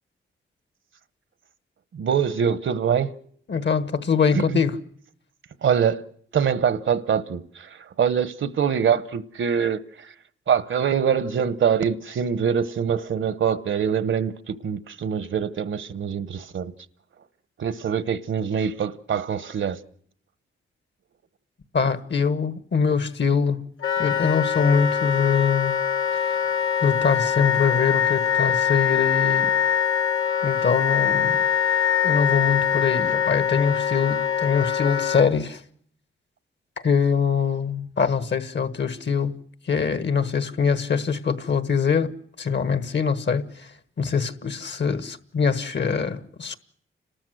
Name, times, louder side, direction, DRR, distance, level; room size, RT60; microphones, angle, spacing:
voice 1, 1.9-3.1 4.3-4.6 5.6-6.0 6.3-10.1 10.5-16.7 17.6-19.8, right 7 dB, 70° right, 1.0 m, -24 dB
voice 2, 3.5-4.8 21.7-23.7 24.0-25.8 26.1-26.4 26.8-29.5 30.4-31.4 32.0-35.6 36.8-39.4 39.7-42.1 42.4-43.7 44.0-46.6, left 6 dB, 55° left, 1.5 m, -23 dB
Wind instrument woodwind instrument, 23.8-35.3, left 8 dB, 80° left, 1.4 m, -23 dB
29.5 x 13.0 x 7.8 m
cardioid pair, 80°, 21 cm